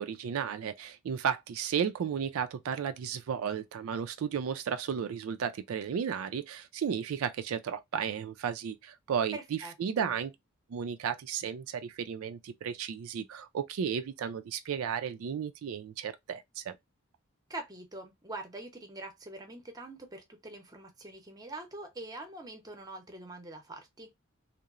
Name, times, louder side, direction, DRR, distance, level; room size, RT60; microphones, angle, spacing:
voice 1, 0.0-10.3 10.7-16.8, right 7 dB, 80° right, 0.3 m, -34 dB
voice 2, 9.3-10.1 17.5-24.1, right 2 dB, 20° right, 0.6 m, -44 dB
2.9 x 2.0 x 2.3 m
head